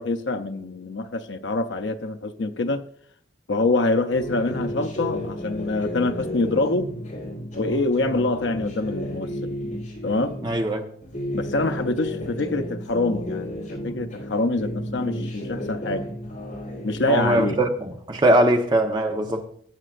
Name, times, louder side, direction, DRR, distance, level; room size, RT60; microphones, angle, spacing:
voice 1, 0.0-2.8 3.5-6.9 7.6-9.6 10.0-10.3 11.3-16.1 16.8-17.6, left 2 dB, 75° left, 0.7 m, -25 dB
sound 1, 4.1-10.6 11.0-14.3 14.6-17.7, left 1 dB, 45° left, 5.0 m, -32 dB
voice 2, 10.4-10.9 17.1-19.4, right 1 dB, 25° right, 1.1 m, -21 dB
19.0 x 7.6 x 2.5 m
head